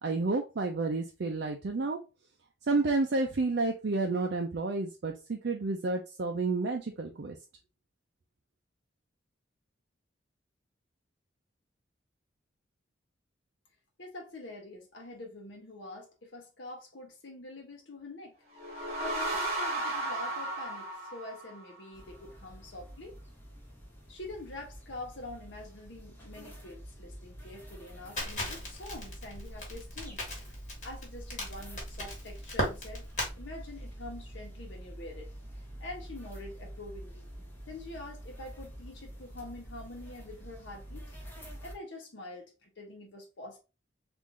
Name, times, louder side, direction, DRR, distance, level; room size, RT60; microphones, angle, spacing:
voice 1, 0.0-2.0 2.7-7.4, right 3 dB, 60° right, 0.4 m, -30 dB
voice 2, 14.0-18.4 19.0-23.2 24.1-30.2 30.8-33.1 33.4-35.3 35.8-37.3 37.7-41.1 41.6-43.6, left 2 dB, 70° left, 0.8 m, -45 dB
sound 1, 18.4-22.0, right 2 dB, 35° right, 1.0 m, -34 dB
sound 2, 21.9-41.7, equal, 10° left, 0.8 m, -47 dB
Crackle, 28.2-33.3, left 1 dB, 40° left, 1.4 m, -36 dB
3.6 x 2.5 x 3.1 m
head